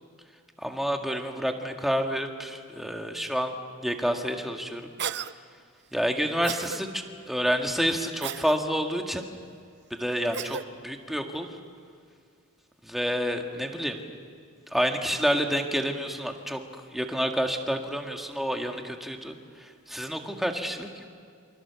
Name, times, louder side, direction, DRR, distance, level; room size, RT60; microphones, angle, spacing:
voice 1, 0.6-3.5 3.8-4.9 5.9-9.3 9.9-11.6 12.8-14.0 14.7-16.6 16.9-21.0, equal, ahead, 3 dB, 1.8 m, -29 dB
Cough, 5.0-5.3 6.4-6.8 8.2-8.6 10.3-10.7, right 7 dB, 50° right, 0.7 m, -33 dB
28.0 x 26.0 x 7.0 m, 2.2 s
head